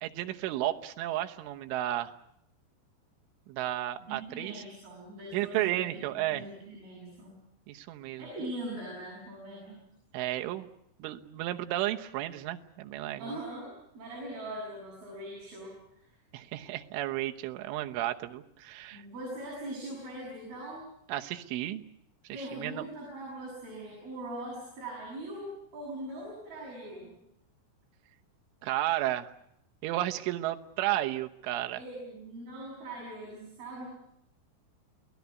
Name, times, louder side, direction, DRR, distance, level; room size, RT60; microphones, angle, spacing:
voice 1, 0.0-2.1 3.5-4.6 5.3-6.4 7.7-8.3 10.1-10.7 11.0-13.4 16.3-19.0 21.1-21.8 22.3-22.9 28.6-29.3 29.8-31.8, right 14 dB, 80° right, 6 dB, 3.5 m, -33 dB
voice 2, 4.1-7.4 8.2-9.8 13.2-16.2 18.9-20.8 22.3-27.1 31.7-33.9, right 1 dB, 50° right, -3 dB, 8.8 m, -41 dB
29.0 x 18.5 x 8.3 m, 0.77 s
omnidirectional pair, 5.6 m